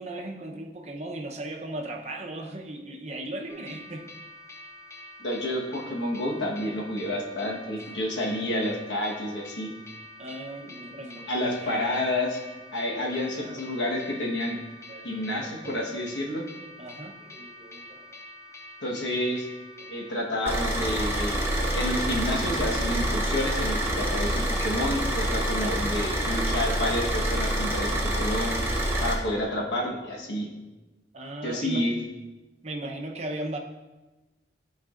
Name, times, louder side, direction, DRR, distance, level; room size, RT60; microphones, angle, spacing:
voice 1, 0.0-4.1 7.4-7.6 7.8-8.0 10.2-11.8 12.9-13.6 14.9-15.9 16.8-18.2 19.8-20.1 31.1-31.9 32.6-33.6, right 1 dB, 40° right, 2 dB, 0.7 m, -38 dB
sound 1, 3.5-20.2, left 1 dB, 15° left, 0.6 m, -46 dB
voice 2, 5.2-9.7 11.3-12.4 12.7-14.6 15.0-16.4 18.8-19.5 19.9-28.5 29.0-30.5 31.4-32.0, left 1 dB, 85° left, -1 dB, 1.2 m, -29 dB
Car / Idling, 20.5-29.1, right 1 dB, 15° right, 1.0 m, -27 dB
11.0 x 4.7 x 2.5 m, 1.1 s
head